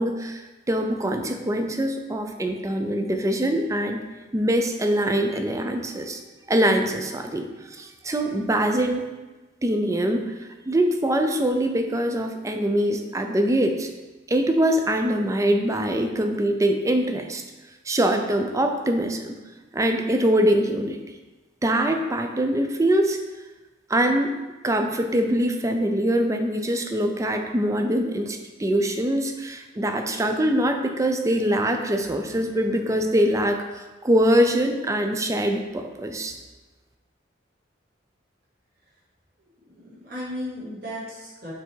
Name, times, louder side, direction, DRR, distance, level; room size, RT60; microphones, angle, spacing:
voice 1, 0.0-4.0 4.3-6.2 6.5-9.1 9.6-13.9 14.3-17.4 17.9-19.4 19.7-21.0 21.6-23.2 23.9-24.4 24.6-36.3, right 1 dB, 15° right, 5 dB, 0.4 m, -23 dB
voice 2, 39.6-41.5, equal, 55° right, -8 dB, 2.1 m, -35 dB
6.7 x 3.4 x 4.5 m, 1.2 s
head